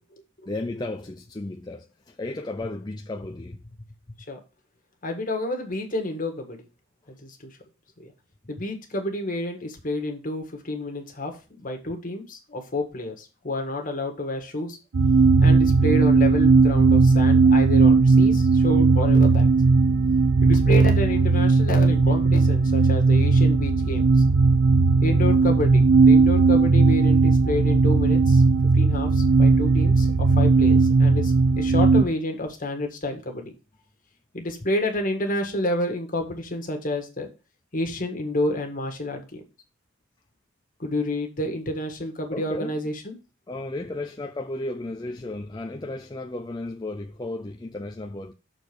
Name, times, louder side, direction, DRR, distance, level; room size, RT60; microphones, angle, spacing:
voice 1, 0.5-3.6 42.3-42.7 43.5-48.3, left 2 dB, 20° left, 0.5 m, -34 dB
voice 2, 5.0-6.6 7.2-7.5 8.0-8.1 8.5-14.8 15.4-19.5 20.4-24.1 25.0-28.4 28.7-33.5 34.3-37.3 37.7-39.4 40.8-43.2, left 1 dB, 40° left, 1.7 m, -29 dB
sound 1, 14.9-32.0, right 4 dB, 85° right, 0.5 m, -17 dB
6.9 x 4.5 x 6.2 m
head